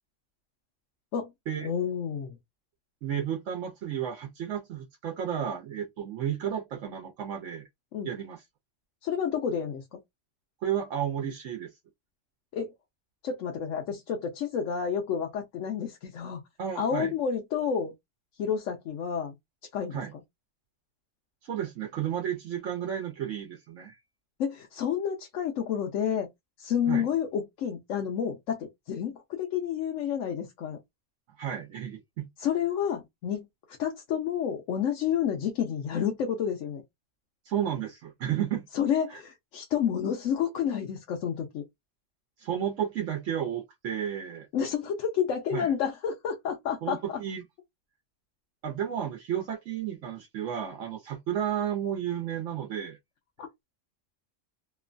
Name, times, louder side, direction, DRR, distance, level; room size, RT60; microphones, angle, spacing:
voice 1, 1.6-2.4 7.9-8.1 9.0-10.0 12.5-12.7 13.2-16.4 16.8-17.9 18.4-19.4 19.7-20.0 24.4-26.3 26.6-30.8 32.4-33.5 33.8-36.8 38.7-41.6 44.5-47.0 53.4-53.6, left 8 dB, 85° left, 1.0 m, -30 dB
voice 2, 3.0-7.7 8.0-8.4 10.6-11.8 16.6-17.1 19.9-20.1 21.4-24.0 26.9-27.1 31.4-32.3 37.4-38.7 39.1-39.2 42.4-44.5 45.5-45.7 46.8-47.4 48.6-53.0, right 9 dB, 85° right, 1.0 m, -32 dB
3.0 x 2.2 x 2.4 m
omnidirectional pair, 1.3 m